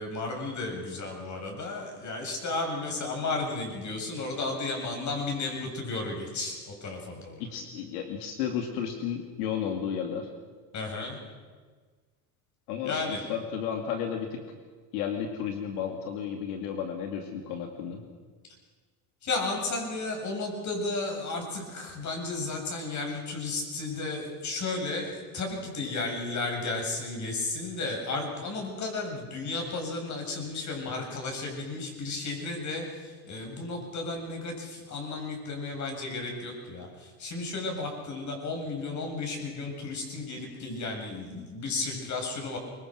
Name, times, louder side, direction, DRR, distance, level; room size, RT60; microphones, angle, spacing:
voice 1, 0.0-7.4 10.7-11.2 12.8-13.2 19.2-42.6, left 3 dB, 40° left, 2 dB, 7.6 m, -33 dB
voice 2, 7.4-10.3 12.7-14.4 14.9-18.0, left 8 dB, 85° left, 4 dB, 2.6 m, -33 dB
24.5 x 22.0 x 6.3 m, 1.5 s
supercardioid pair, 115°, 45 cm